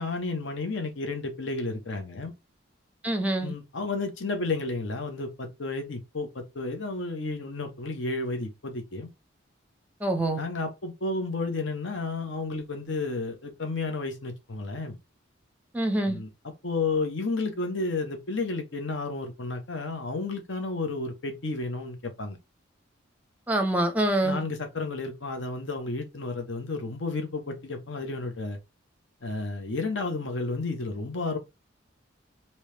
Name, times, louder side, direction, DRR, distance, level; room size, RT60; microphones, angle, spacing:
voice 1, 0.0-2.3 3.4-9.1 10.4-15.0 16.1-16.3 16.6-22.4 24.2-28.6 29.2-31.4, left 3 dB, 70° left, 0.8 m, -32 dB
voice 2, 3.0-3.5 10.0-10.4 15.7-16.2 23.5-24.4, right 1 dB, 10° right, 0.7 m, -25 dB
3.1 x 2.9 x 3.2 m
head